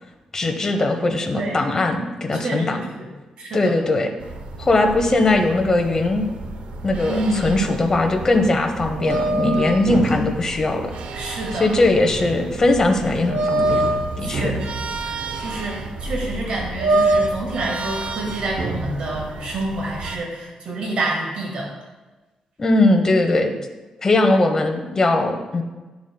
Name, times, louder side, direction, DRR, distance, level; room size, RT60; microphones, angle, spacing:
voice 1, 0.3-2.8 3.5-4.1 4.6-6.3 6.8-10.9 11.5-13.9 14.2-14.5 22.6-23.6 24.0-25.6, left 2 dB, 25° left, 4 dB, 0.9 m, -20 dB
voice 2, 2.4-3.1 3.4-3.7 7.1-7.5 9.5-9.8 11.1-11.7 14.2-21.7, right 2 dB, 60° right, -2 dB, 1.6 m, -28 dB
sound 1, 4.2-20.2, right 2 dB, 80° right, 0.7 m, -27 dB
11.0 x 7.1 x 2.2 m, 1.2 s
wide cardioid pair, 150°, 2 cm